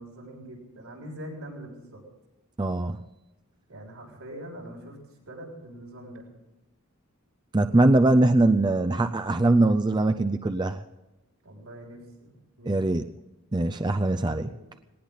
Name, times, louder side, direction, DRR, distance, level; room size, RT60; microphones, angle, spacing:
voice 1, 0.0-2.0 3.7-5.0 5.3-6.3 11.4-12.8 14.3-14.7, right 1 dB, 80° right, -1 dB, 6.9 m, -43 dB
voice 2, 2.6-3.1 7.5-10.8 12.7-13.1 13.5-14.5, right 2 dB, 20° right, 8 dB, 0.4 m, -22 dB
19.5 x 19.0 x 4.0 m, 0.98 s
head